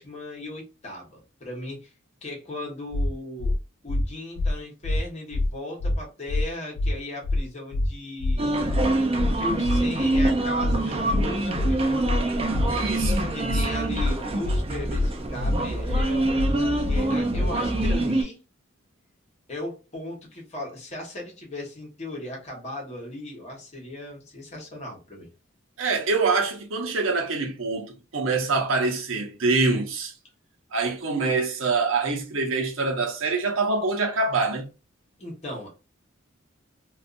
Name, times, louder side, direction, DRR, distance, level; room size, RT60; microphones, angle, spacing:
voice 1, 0.0-1.9 2.2-3.6 3.8-8.6 9.4-11.8 13.3-18.4 19.5-25.3 35.2-35.8, left 1 dB, 35° left, 1.1 m, -37 dB
sound 1, 2.9-3.1 3.4-3.6 3.9-4.0 4.4-4.5 4.8-5.0 5.3-5.5 5.8-6.0 6.3-6.4 6.8-6.9 7.2-7.4 7.7-7.9 8.2-8.4 8.7-8.8 9.2-9.3 9.6-9.8 10.1-10.3 10.6-10.8 11.1-11.2 11.6-11.7 12.0-12.2 12.5-12.7 13.0-13.2 13.5-13.6 14.0-14.1 14.4-14.6 14.9-15.1 15.4-15.6 15.9-16.0 16.4-16.5 16.8-17.0 17.3-17.5 17.8-18.0, left 2 dB, 80° left, 0.4 m, -24 dB
sound 2, 8.4-18.2, right 2 dB, 30° right, 0.4 m, -26 dB
voice 2, 12.7-13.6 25.8-30.1 30.7-34.7, right 3 dB, 75° right, 0.7 m, -25 dB
2.6 x 2.4 x 2.4 m
head